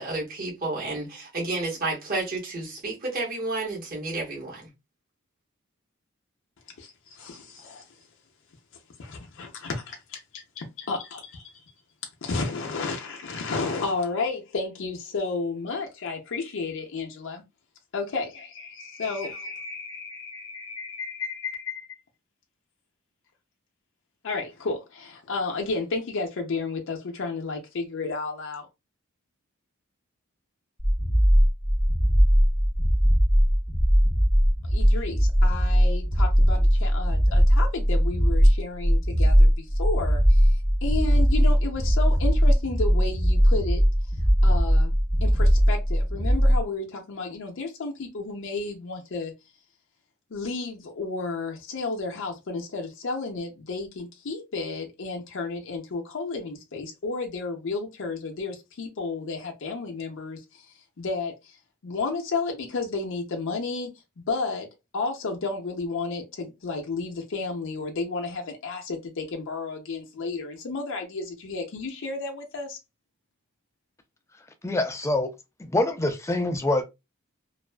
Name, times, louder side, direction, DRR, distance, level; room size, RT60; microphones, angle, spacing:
voice 1, 0.0-4.7, right 2 dB, 45° right, 1.0 m, -31 dB
voice 2, 6.8-7.9 9.0-11.6 12.2-17.4 17.9-22.0 24.2-28.7 34.6-43.8 44.4-44.9 45.2-49.3 50.3-64.7 64.9-72.8, left 3 dB, 60° left, 0.5 m, -32 dB
sound 1, 30.8-46.6, equal, 15° right, 0.8 m, -20 dB
voice 3, 74.6-75.3 75.7-76.9, left 1 dB, 15° left, 0.4 m, -25 dB
2.5 x 2.3 x 2.2 m
head